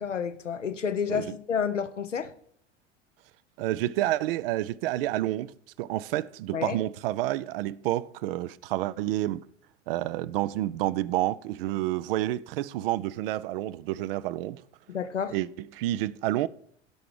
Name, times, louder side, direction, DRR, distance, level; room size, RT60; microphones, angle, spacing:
voice 1, 0.0-2.3 6.5-6.8 14.9-15.3, left 7 dB, 80° left, 1.0 m, -30 dB
voice 2, 3.6-9.5 9.9-14.6 15.3-16.5, right 15 dB, 50° right, 0.6 m, -29 dB
17.0 x 5.9 x 4.7 m
figure-of-eight pair, 80°, 36 cm